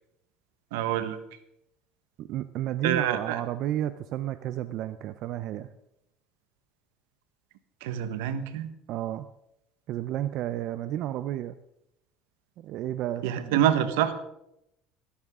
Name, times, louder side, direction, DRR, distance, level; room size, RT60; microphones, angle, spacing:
voice 1, 0.7-1.2 2.8-3.4 7.8-8.7 13.2-14.1, right 10 dB, 90° right, 11 dB, 1.3 m, -26 dB
voice 2, 2.2-5.7 8.9-9.3 9.9-11.6 12.6-13.5, right 12 dB, 60° right, 12 dB, 0.6 m, -32 dB
17.0 x 13.0 x 3.7 m, 0.82 s
supercardioid pair, 105°, 0 cm